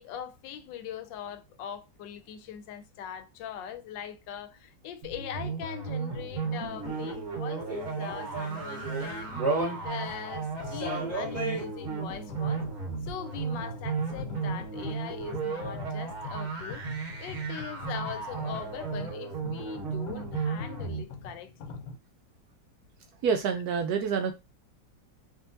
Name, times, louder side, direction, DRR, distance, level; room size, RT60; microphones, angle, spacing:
voice 1, 0.0-9.4 9.8-12.6 13.0-16.9 17.2-21.7, left 9 dB, 80° left, 1.3 m, -41 dB
sound 1, 5.0-21.0, right 5 dB, 50° right, 1.4 m, -35 dB
sound 2, 6.7-10.1 10.5-11.7 15.2-15.3, right 2 dB, 10° left, 1.4 m, -34 dB
sound 3, 10.1-22.0, left 4 dB, 65° left, 1.0 m, -44 dB
voice 2, 23.2-24.3, right 6 dB, 70° right, 1.0 m, -27 dB
3.7 x 2.9 x 2.6 m
omnidirectional pair, 2.0 m